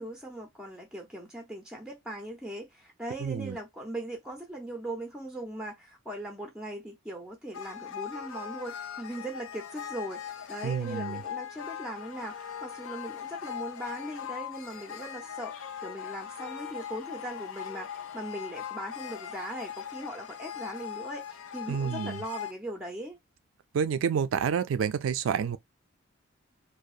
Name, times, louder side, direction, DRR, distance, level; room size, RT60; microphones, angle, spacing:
voice 1, 0.0-23.2, right 1 dB, 5° right, 0.5 m, -39 dB
voice 2, 3.2-3.6 10.6-11.2 21.7-22.2 23.7-25.6, right 7 dB, 75° right, 0.3 m, -29 dB
sound 1, 7.5-22.5, left 9 dB, 75° left, 0.5 m, -40 dB
2.7 x 2.0 x 2.3 m
head